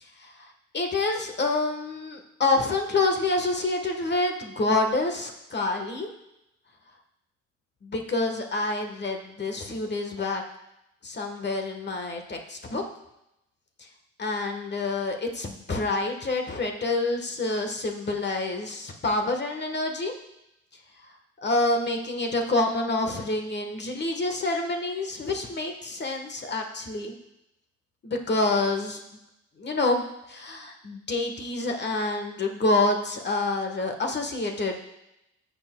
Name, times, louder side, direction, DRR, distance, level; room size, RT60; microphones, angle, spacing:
voice 1, 0.7-6.1 7.8-10.4 11.0-12.8 13.8-13.9 14.2-20.1 21.4-27.2 28.0-29.0 29.6-34.8, left 2 dB, 35° left, 4 dB, 1.3 m, -27 dB
13.5 x 7.1 x 2.2 m, 0.85 s
cardioid pair, 90°, 30 cm